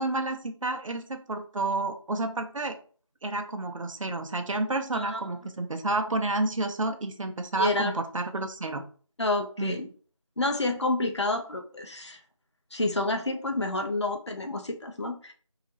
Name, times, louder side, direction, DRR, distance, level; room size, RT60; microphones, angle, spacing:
voice 1, 0.0-2.8 3.2-8.8 9.6-9.8, right 2 dB, 75° right, 6 dB, 0.4 m, -30 dB
voice 2, 7.6-7.9 9.2-9.9 10.4-12.2 12.7-15.3, left 2 dB, 60° left, 4 dB, 0.5 m, -29 dB
2.3 x 2.0 x 2.8 m, 0.42 s
figure-of-eight pair, 180°, 17 cm